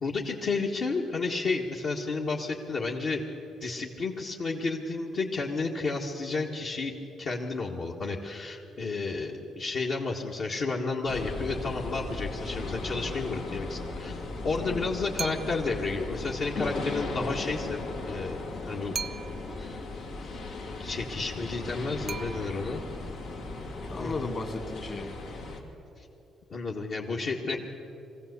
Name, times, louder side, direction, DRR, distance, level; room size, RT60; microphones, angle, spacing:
voice 1, 0.0-3.2 3.6-6.9 7.2-17.8 18.0-18.9 19.6-19.9 20.8-22.8 24.0-24.4 26.0-26.1 26.5-27.6, left 3 dB, 60° left, -3 dB, 1.7 m, -31 dB
sound 1, 11.1-25.6, left 3 dB, 90° left, 2.7 m, -37 dB
voice 2, 14.6-14.9 23.6-25.1, left 3 dB, 40° left, 5 dB, 2.4 m, -36 dB
sound 2, 15.2-15.8 18.9-19.6 22.1-22.9, right 6 dB, 45° right, 0.5 m, -38 dB
21.5 x 15.5 x 8.2 m, 3.0 s
cardioid pair, 90°, 0 cm